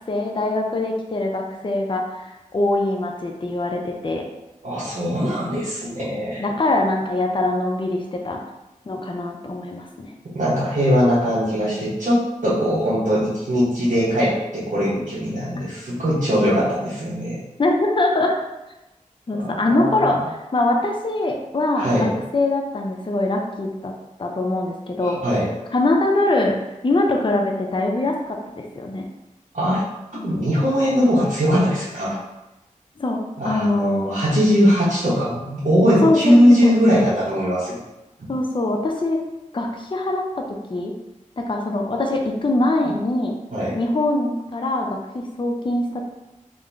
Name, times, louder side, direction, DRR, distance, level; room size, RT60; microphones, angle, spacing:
voice 1, 0.1-4.2 6.4-8.4 8.9-10.1 17.6-18.4 19.3-23.9 24.2-25.2 25.7-26.5 26.8-29.1 30.1-30.3 33.0-34.1 36.0-36.7 38.3-39.2 39.5-40.9 41.4-43.3 43.8-46.0, left 2 dB, 35° left, 1 dB, 0.5 m, -23 dB
voice 2, 4.6-6.4 10.3-17.4 19.3-20.1 21.8-22.1 25.0-25.5 29.5-29.8 30.1-32.2 33.4-37.8 38.2-38.3 43.5-43.8, equal, 65° right, -11 dB, 1.0 m, -20 dB
3.6 x 2.6 x 3.4 m, 1.0 s
wide cardioid pair, 60°, 14 cm